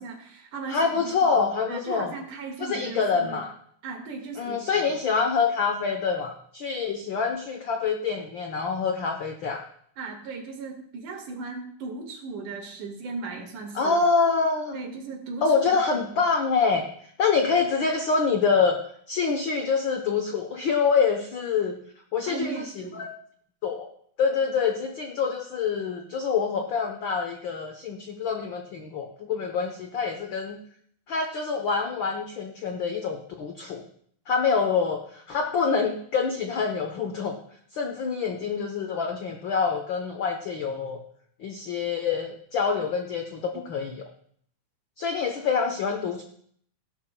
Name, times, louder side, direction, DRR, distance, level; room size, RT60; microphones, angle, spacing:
voice 1, 0.0-1.0 1.4-3.4 3.8-4.8 10.0-14.0 14.7-15.8 22.3-23.0 43.5-43.7, right 4 dB, 80° right, 2 dB, 3.3 m, -37 dB
voice 2, 0.7-2.1 2.6-3.5 4.4-9.6 13.7-14.8 15.4-18.8 19.1-21.8 22.1-23.1 23.6-23.9 24.2-30.6 31.1-33.8 34.3-37.3 37.7-41.0 41.4-44.0 45.0-46.2, left 5 dB, 85° left, 4 dB, 1.0 m, -26 dB
17.0 x 11.0 x 2.2 m, 0.63 s
omnidirectional pair, 3.5 m